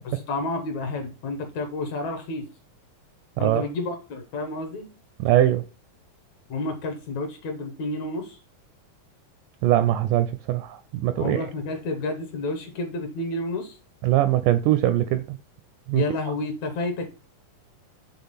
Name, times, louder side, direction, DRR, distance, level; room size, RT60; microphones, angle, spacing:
voice 1, 0.0-2.5 3.4-4.9 6.5-8.4 11.2-13.8 15.9-17.1, left 2 dB, 65° left, 2.1 m, -30 dB
voice 2, 5.2-5.6 9.6-11.5 14.0-15.4 15.9-16.0, right 13 dB, 85° right, 1.8 m, -21 dB
7.4 x 3.5 x 5.7 m
omnidirectional pair, 4.1 m